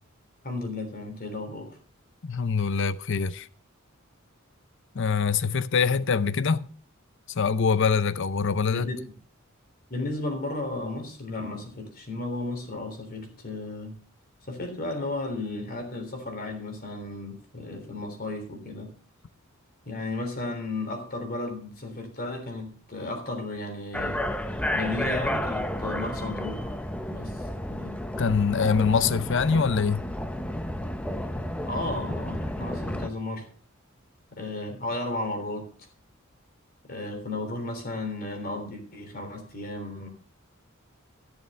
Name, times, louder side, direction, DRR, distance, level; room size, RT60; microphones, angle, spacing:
voice 1, 0.4-1.8 8.7-9.1 9.9-14.0 14.5-18.9 19.8-24.3 24.7-26.7 27.1-28.0 31.6-33.5 34.3-35.7 36.9-40.1, left 2 dB, 45° left, 3.4 m, -34 dB
voice 2, 2.2-3.5 4.9-6.6 7.3-8.9 28.2-30.0, left 5 dB, 60° left, 0.6 m, -24 dB
sound 1, 23.9-33.1, left 1 dB, 5° left, 0.7 m, -31 dB
14.5 x 7.0 x 5.4 m
head